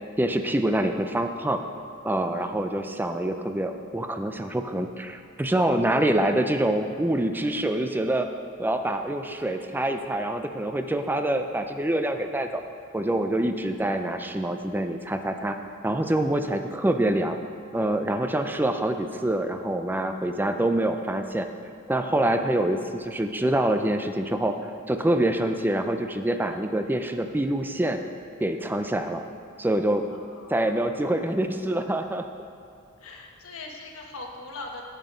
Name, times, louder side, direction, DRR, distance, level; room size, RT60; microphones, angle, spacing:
voice 1, 0.2-1.6 2.0-8.3 8.6-12.6 12.9-15.6 15.8-17.4 17.7-21.5 21.9-28.0 28.4-29.2 29.6-30.1 30.5-32.2, right 1 dB, 10° right, 7 dB, 0.4 m, -26 dB
voice 2, 30.1-30.8 33.0-34.8, left 2 dB, 75° left, 1 dB, 1.3 m, -41 dB
9.1 x 7.8 x 5.0 m, 2.4 s
head